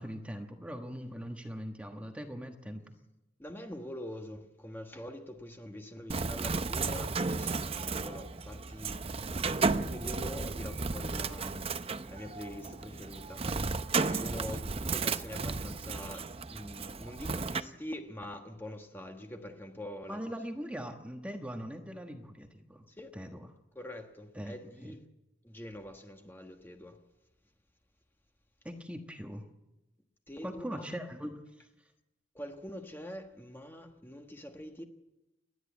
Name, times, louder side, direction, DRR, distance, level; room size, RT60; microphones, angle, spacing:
voice 1, 0.0-2.9 20.1-22.9 23.1-23.5 24.3-24.9 28.6-29.4 30.4-31.4, equal, 5° right, 1.3 m, -41 dB
voice 2, 3.4-9.0 9.4-13.5 14.0-20.2 23.0-23.1 23.7-25.0 25.4-27.0 30.3-30.9 32.3-34.8, left 1 dB, 10° left, 1.3 m, -44 dB
Bird, 6.1-17.6, right 4 dB, 30° right, 0.6 m, -34 dB
29.0 x 11.0 x 8.3 m
head